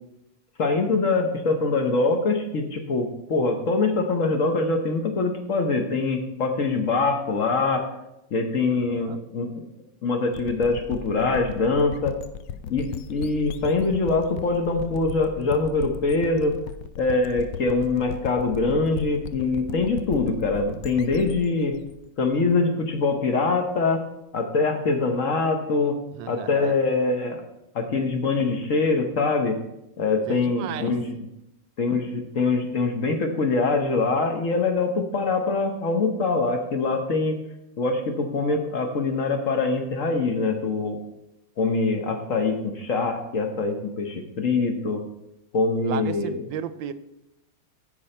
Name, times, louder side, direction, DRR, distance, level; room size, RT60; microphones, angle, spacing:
voice 1, 0.6-7.8 8.3-9.5 10.0-12.2 12.7-16.6 17.0-21.8 22.2-24.0 24.3-26.0 26.3-27.4 27.7-29.6 30.0-31.0 31.8-37.4 37.8-41.0 41.6-45.0 45.5-46.4, left 3 dB, 50° left, 4 dB, 1.1 m, -24 dB
voice 2, 8.7-9.2 26.1-26.8 30.3-30.9 45.8-46.9, right 9 dB, 85° right, 13 dB, 1.3 m, -34 dB
sound 1, 10.3-23.0, left 8 dB, 75° left, 1.1 m, -37 dB
13.5 x 4.7 x 4.3 m, 0.85 s
omnidirectional pair, 2.0 m